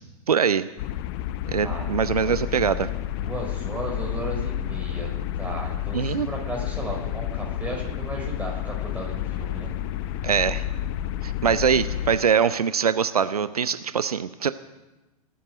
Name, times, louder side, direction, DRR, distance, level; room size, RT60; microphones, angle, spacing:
voice 1, 0.3-0.7 1.5-2.9 5.9-6.3 10.2-10.6 11.2-14.5, right 7 dB, 75° right, 14 dB, 0.6 m, -23 dB
sound 1, 0.8-12.2, left 11 dB, 45° left, 0.7 m, -30 dB
voice 2, 1.6-2.4 3.2-5.1 5.4-9.8, right 1 dB, 10° right, -1 dB, 5.7 m, -35 dB
18.5 x 8.9 x 8.2 m, 1.1 s
figure-of-eight pair, 95°, 19 cm